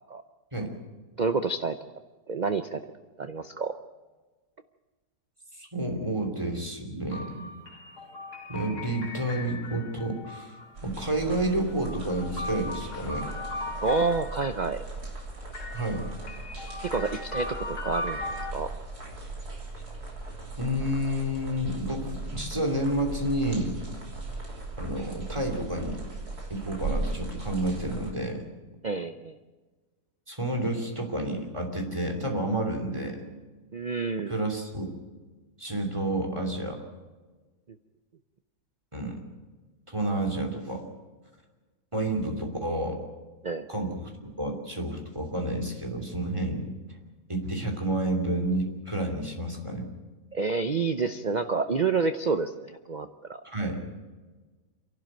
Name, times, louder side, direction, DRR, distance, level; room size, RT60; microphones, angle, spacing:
voice 1, 1.2-1.8 2.3-2.8 3.2-3.8 13.8-14.8 16.8-18.2 18.5-18.7 28.8-29.3 33.7-34.3 43.4-43.7 50.3-53.4, right 4 dB, 50° right, 9 dB, 0.5 m, -28 dB
voice 2, 5.6-7.5 8.5-10.6 10.8-13.3 15.7-16.1 20.6-23.8 24.8-26.0 26.5-28.4 30.3-33.2 34.3-34.9 35.6-36.8 38.9-39.2 39.9-40.8 41.9-43.0 43.7-46.7 47.3-49.9 53.4-53.8, right 1 dB, 20° right, 2 dB, 3.0 m, -30 dB
sound 1, 7.1-10.9 11.6-14.7 15.5-18.5, left 2 dB, 85° left, 2.3 m, -38 dB
sound 2, 10.7-28.1, right 3 dB, 75° right, 3.8 m, -38 dB
27.0 x 12.0 x 9.1 m, 1.3 s
omnidirectional pair, 1.7 m